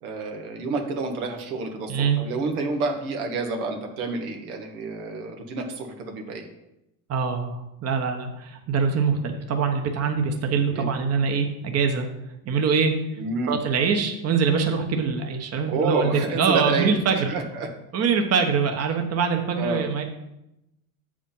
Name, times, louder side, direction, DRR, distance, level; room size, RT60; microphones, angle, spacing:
voice 1, 0.0-6.5 10.7-10.9 13.2-13.6 15.7-16.9 17.3-17.7 19.6-19.8, right 3 dB, 85° right, 3 dB, 1.5 m, -29 dB
voice 2, 1.9-2.2 7.1-12.1 12.4-12.9 13.5-17.3 17.9-20.0, right 5 dB, 35° right, 4 dB, 1.1 m, -24 dB
7.2 x 5.0 x 5.6 m, 0.88 s
supercardioid pair, 105°, 43 cm